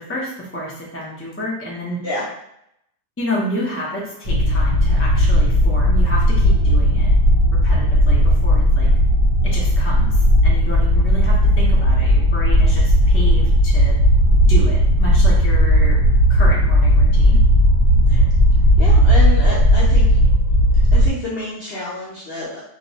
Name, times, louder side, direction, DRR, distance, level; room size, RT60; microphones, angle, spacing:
voice 1, 0.0-2.0 3.2-7.1 7.6-8.9 9.4-14.0 14.3-16.0 16.3-17.4, equal, 15° left, -5 dB, 0.4 m, -30 dB
sound 1, 4.2-21.1, equal, 45° right, 1.3 m, -15 dB
voice 2, 18.8-20.1 20.7-22.6, left 2 dB, 55° left, -8 dB, 0.7 m, -28 dB
3.1 x 2.9 x 2.7 m, 0.76 s
omnidirectional pair, 1.8 m